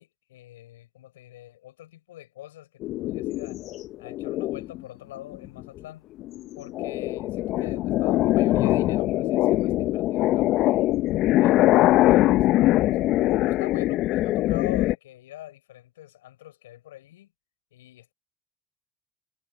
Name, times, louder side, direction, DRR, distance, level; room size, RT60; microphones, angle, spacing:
voice 1, 0.0-3.6 4.0-6.0 6.6-10.8 11.4-13.1 13.4-17.3 17.7-18.1, left 14 dB, 80° left, 6.3 m, -43 dB
sound 1, 2.8-4.8 5.3-5.8 6.2-14.9, left 16 dB, 65° left, 1.1 m, -22 dB
hypercardioid pair, 55°, 0 cm